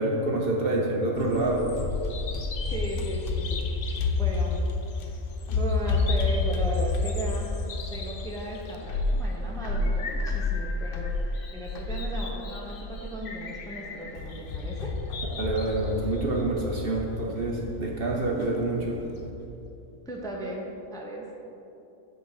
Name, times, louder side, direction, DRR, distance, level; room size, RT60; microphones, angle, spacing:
voice 1, 0.0-1.7 15.4-19.0, right 2 dB, 50° right, -1 dB, 0.9 m, -27 dB
Bird vocalization bird call bird song, 1.2-19.3, left 3 dB, 50° left, 0.8 m, -30 dB
voice 2, 2.7-4.5 5.0-5.1 5.5-7.6 7.9-14.9 20.0-21.3, right 1 dB, 5° left, -2 dB, 0.7 m, -36 dB
8.6 x 3.9 x 6.6 m, 2.8 s
omnidirectional pair, 1.4 m